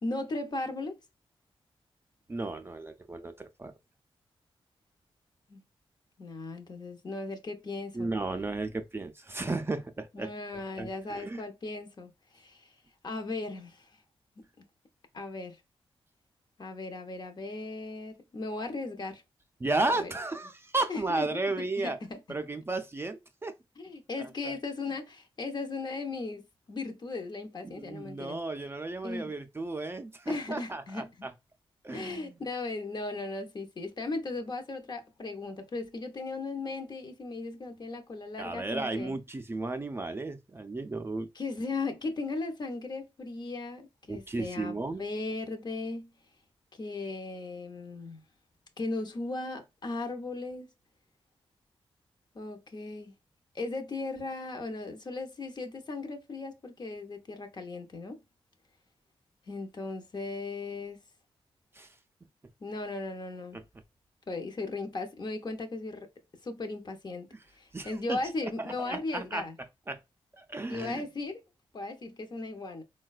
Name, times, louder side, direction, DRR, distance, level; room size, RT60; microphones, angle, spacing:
voice 1, 0.0-1.0 5.5-5.6 6.2-8.1 10.1-12.7 13.0-13.9 14.4-14.5 15.1-15.6 16.6-19.2 19.9-20.1 20.9-21.3 21.6-22.2 23.8-28.4 29.0-29.3 30.3-31.1 31.9-39.1 41.3-46.1 46.7-48.2 48.8-50.7 52.3-53.1 53.5-58.2 59.5-61.0 62.6-63.6 64.3-66.1 66.4-67.3 67.6-69.6 70.7-71.4 71.7-72.8, left 3 dB, 45° left, 0.7 m, -37 dB
voice 2, 2.3-3.7 7.9-10.3 10.8-11.4 19.6-22.0 22.3-23.5 24.4-24.6 27.6-31.3 31.8-32.4 38.4-41.3 44.1-45.0 61.7-61.9 63.5-63.6 67.3-67.4 67.7-68.2 68.6-69.5 69.9-70.0 70.3-71.1, right 2 dB, 25° right, 0.4 m, -34 dB
3.8 x 2.2 x 2.3 m
cardioid pair, 75°, 10 cm